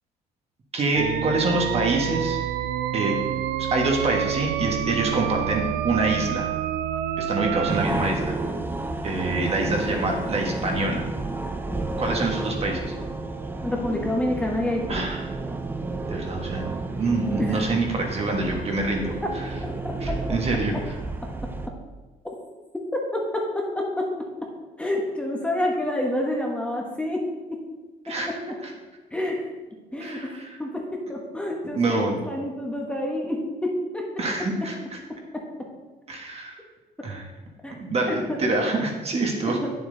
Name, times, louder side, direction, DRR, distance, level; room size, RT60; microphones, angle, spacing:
voice 1, 0.7-2.4 2.9-3.2 3.6-6.5 7.2-8.4 9.0-11.1 12.0-12.9 14.9-15.2 16.1-19.5 20.0-20.7 28.1-28.3 28.6-28.7 30.0-30.5 31.7-32.2 34.2-35.0 36.1-36.6 37.0-37.2 37.8-39.6, right 2 dB, 35° right, 1 dB, 1.6 m, -26 dB
sound 1, 0.9-7.9, right 10 dB, 80° right, 0.5 m, -27 dB
sound 2, 7.7-21.7, right 2 dB, 10° right, 0.6 m, -31 dB
voice 2, 13.6-15.1 17.4-17.7 23.1-24.1 24.4-24.5 24.8-27.6 28.1-28.4 29.1-29.4 29.9-34.5 35.3-35.7 37.6-38.4 39.4-39.7, left 1 dB, 5° left, -1 dB, 1.4 m, -28 dB
8.7 x 7.2 x 4.0 m, 1.2 s
cardioid pair, 110°, 17 cm